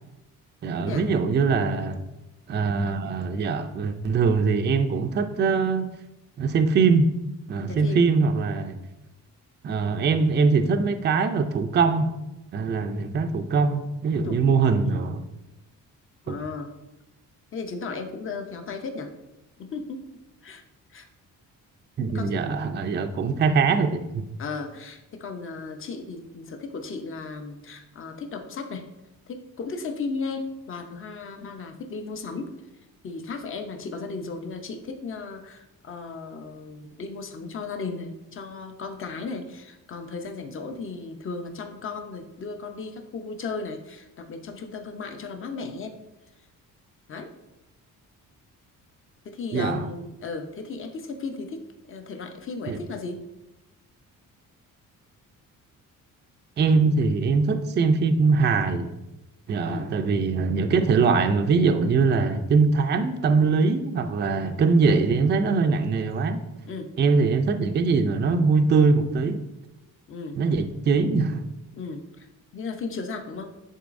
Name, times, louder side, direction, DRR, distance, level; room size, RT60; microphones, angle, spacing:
voice 1, 0.6-2.0 2.5-5.9 6.4-7.1 7.5-8.8 9.6-12.2 12.5-15.2 16.3-16.4 22.0-24.2 49.5-49.9 52.7-52.8 56.6-58.9 59.5-66.4 67.0-69.4 70.4-71.4, right 4 dB, 30° right, 7 dB, 0.4 m, -22 dB
voice 2, 7.7-8.1 14.2-14.4 14.8-15.1 16.3-16.7 17.5-19.1 19.6-20.0 20.4-20.6 20.9-21.1 22.1-22.6 24.4-28.9 29.3-32.5 33.0-46.0 47.1-47.3 49.2-53.2 59.7-59.9 66.6-66.9 70.1-70.4 71.7-72.3 72.5-73.6, left 4 dB, 40° left, 5 dB, 0.7 m, -35 dB
10.0 x 3.9 x 2.6 m, 0.96 s
cardioid pair, 140°, 34 cm